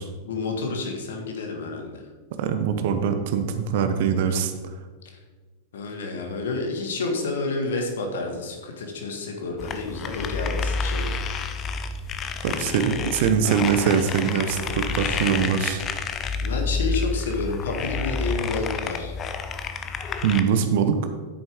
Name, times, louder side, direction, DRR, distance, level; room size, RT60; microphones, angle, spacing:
voice 1, 0.2-2.0 5.7-11.2 14.6-15.5 16.4-19.2, left 3 dB, 60° left, 3 dB, 1.7 m, -30 dB
voice 2, 2.3-4.5 12.4-15.9 20.2-21.0, right 7 dB, 50° right, 8 dB, 0.9 m, -23 dB
sound 1, 9.6-20.4, left 4 dB, 30° left, 0.7 m, -29 dB
9.7 x 8.7 x 3.6 m, 1.4 s
figure-of-eight pair, 90°, 0 cm